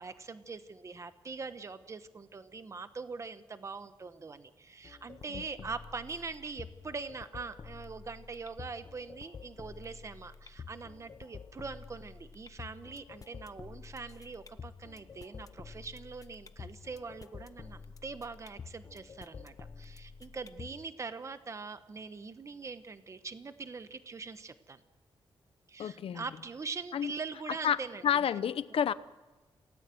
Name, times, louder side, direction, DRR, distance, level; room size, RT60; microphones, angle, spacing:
voice 1, 0.0-24.8 25.7-28.0, right 4 dB, 30° right, 11 dB, 1.1 m, -43 dB
sound 1, 4.8-20.8, left 5 dB, 35° left, 0.9 m, -49 dB
voice 2, 25.8-26.2 26.9-27.1 27.6-27.8 28.0-28.9, left 9 dB, 75° left, 15 dB, 0.9 m, -29 dB
28.0 x 18.5 x 7.8 m, 1.2 s
wide cardioid pair, 165°, 10 cm